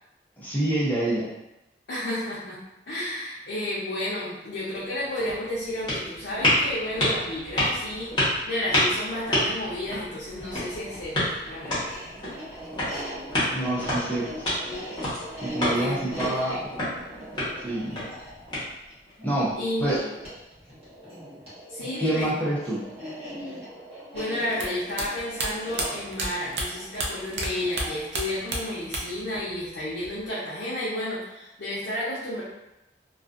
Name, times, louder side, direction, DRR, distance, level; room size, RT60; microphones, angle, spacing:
voice 1, 0.4-1.3 13.5-14.5 15.4-16.6 17.6-18.0 19.2-19.5 19.8-20.0 22.0-22.8, right 1 dB, 10° left, -7 dB, 0.6 m, -27 dB
voice 2, 1.9-12.0 15.6-16.6 19.6-20.2 21.7-22.3 24.1-32.4, left 1 dB, 75° left, -9 dB, 0.6 m, -32 dB
sound 1, 4.6-19.1, left 1 dB, 25° left, 1.0 m, -29 dB
sound 2, 10.3-29.6, equal, 35° right, 1.1 m, -41 dB
sound 3, 24.5-27.5 27.7-29.3 29.5-30.3, right 2 dB, 85° right, 0.5 m, -31 dB
2.4 x 2.4 x 2.4 m, 0.92 s
head